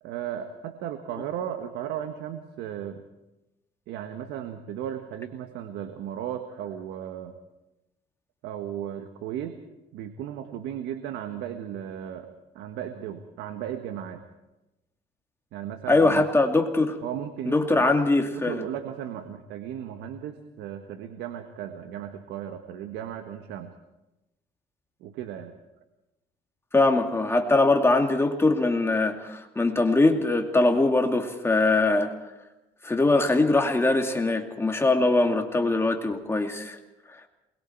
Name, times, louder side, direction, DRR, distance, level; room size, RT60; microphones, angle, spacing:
voice 1, 0.0-3.0 3.9-7.3 8.4-9.6 9.9-12.3 12.5-14.2 15.5-16.2 17.0-17.9 18.3-23.7 25.0-25.5, right 10 dB, 90° right, 7 dB, 1.5 m, -35 dB
voice 2, 15.9-17.0 17.5-18.6 26.7-32.1 32.8-36.8, left 2 dB, 15° left, 3 dB, 2.5 m, -22 dB
28.0 x 21.5 x 4.6 m, 0.98 s
cardioid pair, 110°, 17 cm